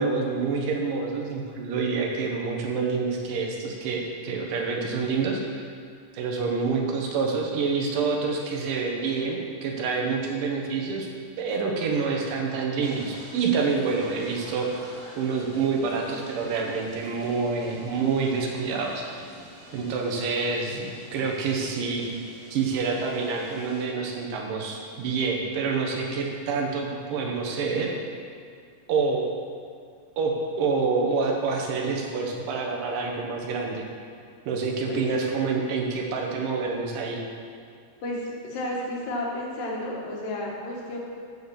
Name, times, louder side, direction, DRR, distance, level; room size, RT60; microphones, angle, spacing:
voice 1, 0.0-5.6 6.1-11.1 11.4-14.7 15.2-19.3 19.7-22.0 22.5-27.9 28.9-29.3 30.2-33.8 34.5-37.2, right 4 dB, 80° right, 0 dB, 2.9 m, -27 dB
sound 1, 12.8-23.9, equal, 25° right, 2.3 m, -47 dB
voice 2, 38.0-41.0, left 1 dB, 85° left, -3 dB, 3.4 m, -32 dB
9.2 x 6.7 x 7.2 m, 2.2 s
omnidirectional pair, 3.8 m